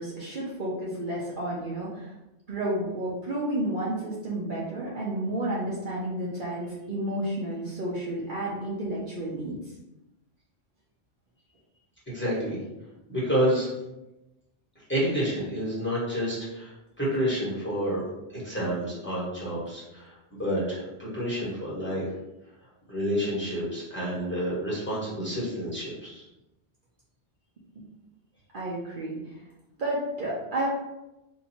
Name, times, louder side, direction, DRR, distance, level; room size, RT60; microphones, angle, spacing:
voice 1, 0.0-2.1 2.5-9.6 28.5-29.4 29.8-30.7, right 1 dB, 50° right, -6 dB, 0.8 m, -31 dB
voice 2, 12.1-12.6 13.1-13.7 14.9-18.0 18.3-22.1 22.9-26.2, equal, 10° left, -9 dB, 1.4 m, -29 dB
2.9 x 2.7 x 4.2 m, 0.95 s
omnidirectional pair, 1.2 m